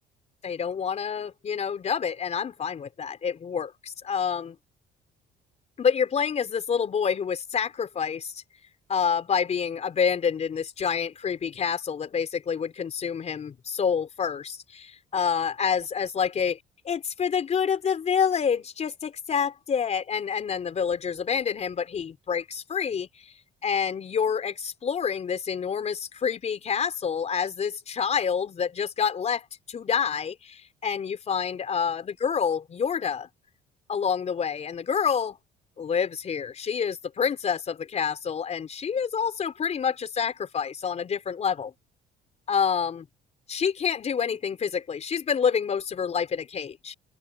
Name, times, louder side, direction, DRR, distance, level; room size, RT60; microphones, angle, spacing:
voice 1, 0.4-4.6 5.8-8.3 8.9-16.6 16.8-23.1 23.6-33.3 33.9-35.4 35.8-41.7 42.5-43.0 43.5-46.9, left 7 dB, 40° left, 4.6 m, -27 dB
open air
cardioid pair, 110°, 17 cm